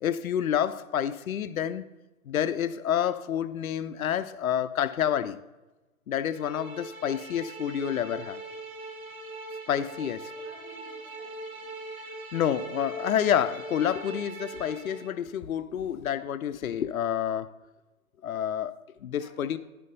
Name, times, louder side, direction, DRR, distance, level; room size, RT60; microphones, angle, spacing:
voice 1, 0.0-1.8 2.3-5.4 6.1-8.4 9.7-10.3 12.3-17.5 18.2-19.6, left 9 dB, 75° left, 0.6 m, -29 dB
sound 1, 6.3-15.1, right 2 dB, 75° right, 1.7 m, -41 dB
voice 2, 10.3-11.7 19.2-19.6, right 3 dB, 15° right, 1.5 m, -54 dB
10.5 x 5.7 x 4.0 m
hypercardioid pair, 160°, 42 cm